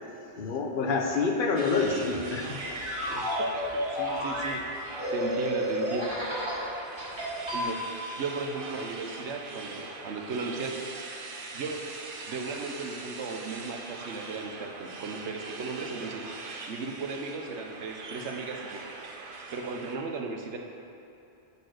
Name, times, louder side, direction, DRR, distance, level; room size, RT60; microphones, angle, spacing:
voice 1, 0.4-2.6, left 4 dB, 50° left, 2 dB, 1.0 m, -27 dB
sound 1, 1.6-20.0, right 3 dB, 55° right, 0.9 m, -42 dB
sound 2, 2.2-6.6 7.0-7.6, equal, 25° right, 1.9 m, -31 dB
voice 2, 3.1-6.1 7.5-7.8 8.2-10.7 11.5-11.8 12.3-16.2 16.7-18.8 19.5-20.6, right 4 dB, 75° right, 2 dB, 1.2 m, -36 dB
10.0 x 4.4 x 6.4 m, 3.0 s
omnidirectional pair, 1.2 m